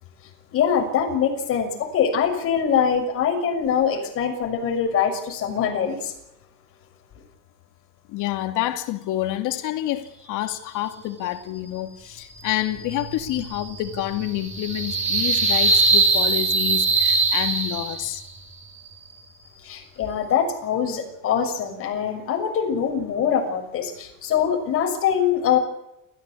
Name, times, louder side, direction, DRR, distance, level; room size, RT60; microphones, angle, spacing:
voice 1, 0.5-6.1 19.6-25.6, left 7 dB, 45° left, 6.5 m, -23 dB
voice 2, 8.1-18.2, left 14 dB, 75° left, 2.5 m, -28 dB
sound 1, 12.3-18.3, right 3 dB, 20° right, 2.9 m, -22 dB
29.5 x 15.5 x 8.5 m
cardioid pair, 170°, 31 cm